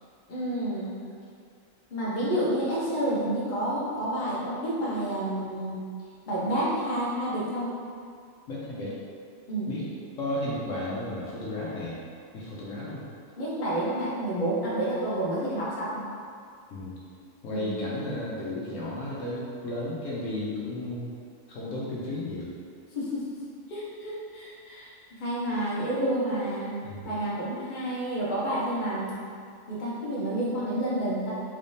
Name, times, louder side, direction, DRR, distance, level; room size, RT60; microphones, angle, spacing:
voice 1, 0.3-1.1 1.9-5.9 6.3-7.7 9.5-9.7 13.4-16.0 17.5-17.8 22.9-23.2 23.7-24.9 25.2-26.7 27.0-29.3 29.7-31.3, right 1 dB, 40° left, -8 dB, 0.9 m, -29 dB
voice 2, 8.5-9.0 9.7-9.9 10.2-12.0 12.3-13.1 16.7-17.0 17.4-21.2 21.5-22.5 26.8-27.0, left 1 dB, 75° left, -6 dB, 1.0 m, -33 dB
3.3 x 3.2 x 2.6 m, 2.3 s
omnidirectional pair, 1.4 m